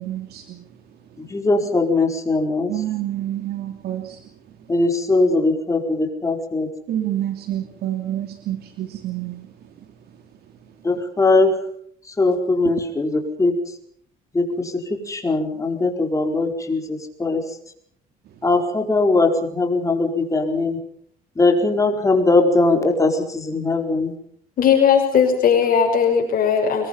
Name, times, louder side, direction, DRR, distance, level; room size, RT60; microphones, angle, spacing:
voice 1, 0.0-1.3 2.7-4.7 6.9-10.2 10.6-10.8 18.2-18.4, right 12 dB, 70° right, 2.8 m, -29 dB
voice 2, 1.2-2.7 4.7-6.7 10.8-11.5 12.1-13.6 14.3-17.4 18.4-20.8 21.4-24.1, left 3 dB, 20° left, 4.7 m, -20 dB
voice 3, 24.6-26.9, left 7 dB, 55° left, 6.2 m, -17 dB
26.0 x 22.0 x 5.6 m
cardioid pair, 110°, 17 cm